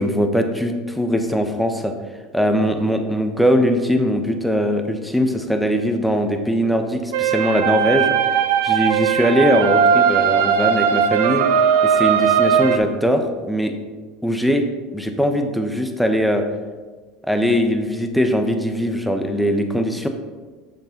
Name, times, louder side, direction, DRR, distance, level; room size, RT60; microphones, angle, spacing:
voice 1, 0.0-1.9 2.3-11.4 11.8-13.7 14.2-14.6 14.9-16.4 17.3-20.1, equal, ahead, 5 dB, 1.0 m, -20 dB
sound 1, 7.1-12.8, right 7 dB, 75° right, 0.7 m, -18 dB
8.3 x 6.6 x 3.9 m, 1.4 s
hypercardioid pair, 80°, 0 cm